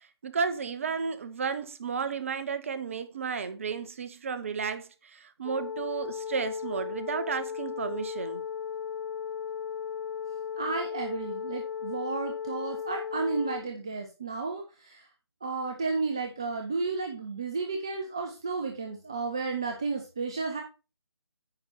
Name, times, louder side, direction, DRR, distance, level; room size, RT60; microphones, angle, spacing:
voice 1, 0.0-8.4, right 5 dB, 30° right, 0.8 m, -33 dB
sound 1, 5.4-13.6, left 7 dB, 45° left, 1.7 m, -36 dB
voice 2, 10.6-15.1 15.4-20.6, right 4 dB, 10° right, 0.3 m, -32 dB
8.9 x 4.2 x 5.9 m
figure-of-eight pair, 155°, 14 cm